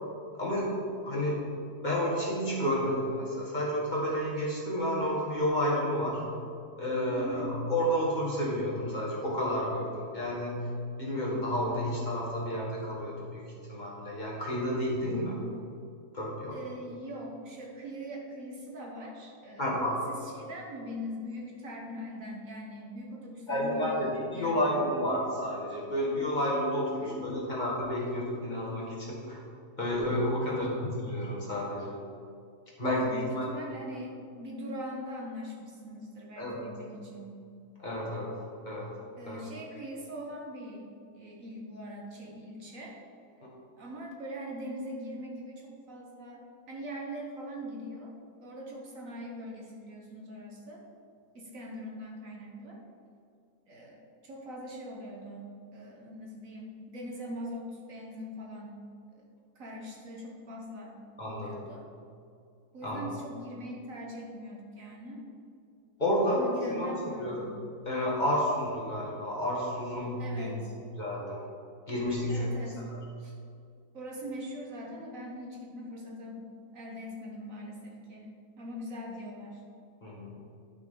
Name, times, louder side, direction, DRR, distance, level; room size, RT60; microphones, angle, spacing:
voice 1, 0.3-0.7 1.0-1.5 1.8-6.2 6.8-10.7 11.0-13.4 13.7-15.4 16.1-16.6 19.6-20.0 23.5-29.4 29.8-31.9 32.8-33.5 36.4-36.6 37.8-38.3 38.7-38.9 39.3-39.4 61.2-61.5 62.8-63.0 66.0-66.9 67.2-67.4 67.9-70.6 71.0-71.4 71.9-72.5 72.9-73.0 80.0-80.3, equal, 30° left, -5 dB, 1.9 m, -30 dB
voice 2, 7.1-7.6 16.5-24.8 26.9-27.3 30.4-30.9 32.9-37.4 39.2-40.9 41.1-43.0 43.4-43.5 43.8-48.1 48.4-50.8 51.3-52.8 53.7-58.8 59.1-59.2 59.5-61.0 61.3-61.9 62.7-65.3 66.3-67.5 70.2-70.7 72.3-72.8 73.2-73.3 73.9-76.5 76.7-79.6, equal, 60° right, -1 dB, 1.4 m, -42 dB
11.0 x 5.9 x 3.8 m, 2.4 s
omnidirectional pair, 1.7 m